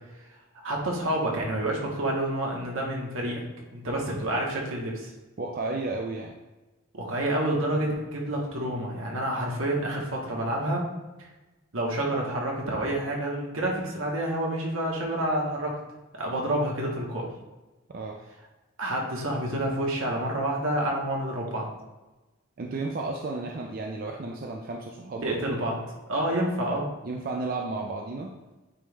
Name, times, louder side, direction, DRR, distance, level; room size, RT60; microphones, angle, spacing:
voice 1, 0.6-3.4 3.7-5.1 6.9-10.9 11.7-15.8 16.1-17.3 18.8-21.7 25.2-25.8 26.1-26.9, right 1 dB, 75° right, -1 dB, 1.4 m, -28 dB
voice 2, 5.4-6.4 17.9-18.2 22.6-25.7 27.0-28.3, right 3 dB, 45° right, 0 dB, 0.5 m, -33 dB
8.7 x 3.1 x 3.5 m, 1.1 s
head